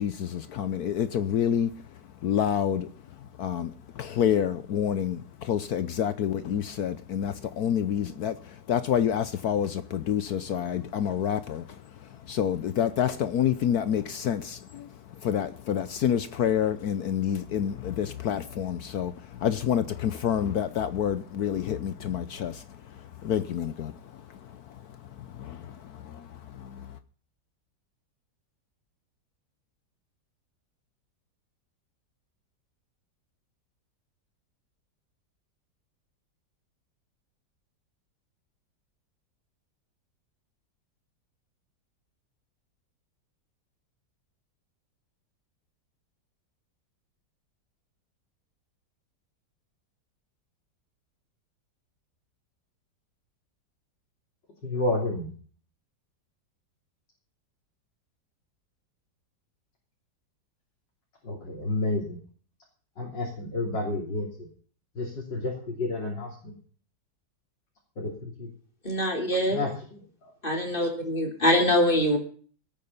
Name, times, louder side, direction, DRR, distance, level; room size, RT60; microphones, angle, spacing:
voice 1, 0.0-27.0, left 9 dB, 65° left, 1.2 m, -29 dB
voice 2, 54.6-55.3 61.2-62.2 63.0-64.5 65.0-66.5 68.0-68.5 69.5-69.7, left 2 dB, 80° left, 3.9 m, -30 dB
voice 3, 68.8-69.7 70.4-72.2, equal, 30° left, 3.4 m, -24 dB
17.5 x 9.0 x 5.5 m
omnidirectional pair, 1.9 m